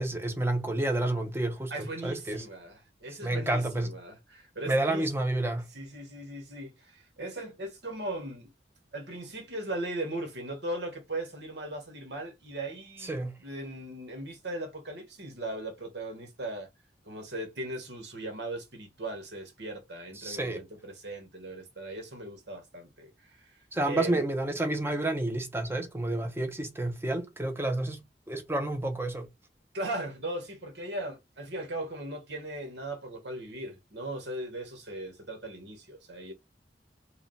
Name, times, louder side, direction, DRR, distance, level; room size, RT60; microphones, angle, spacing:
voice 1, 0.0-2.5 3.2-3.9 4.7-5.7 13.0-13.3 20.2-20.6 23.7-29.3, right 1 dB, 15° right, 0.9 m, -30 dB
voice 2, 1.7-5.0 5.7-8.5 8.9-16.7 17.0-23.5 23.9-24.2 29.7-36.3, right 1 dB, 70° right, 1.7 m, -38 dB
4.9 x 2.5 x 3.3 m
head